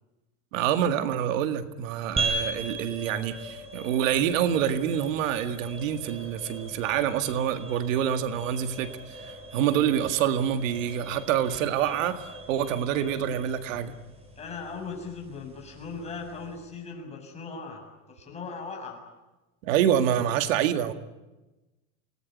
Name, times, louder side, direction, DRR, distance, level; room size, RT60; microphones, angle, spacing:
voice 1, 0.5-9.0 9.5-12.2 12.5-13.9 19.6-20.9, right 9 dB, 85° right, 9 dB, 2.0 m, -26 dB
sound 1, 2.2-16.8, right 2 dB, 15° right, 5.1 m, -39 dB
voice 2, 14.4-17.8 18.1-19.0, left 4 dB, 15° left, 1 dB, 7.1 m, -38 dB
28.5 x 19.0 x 9.5 m, 1.1 s
supercardioid pair, 155°, 38 cm